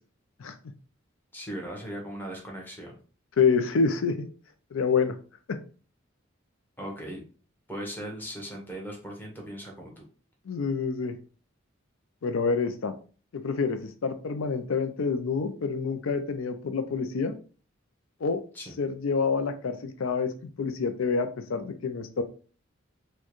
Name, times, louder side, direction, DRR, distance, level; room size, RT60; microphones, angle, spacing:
voice 1, 1.3-3.0 6.8-7.2 7.7-9.9 18.5-18.8, equal, 10° left, -1 dB, 1.0 m, -38 dB
voice 2, 3.4-4.3 4.7-5.1 10.5-11.1 12.2-12.9 13.3-17.4 18.2-18.4 18.8-22.2, left 5 dB, 85° left, 8 dB, 0.4 m, -27 dB
4.4 x 2.2 x 3.0 m, 0.37 s
head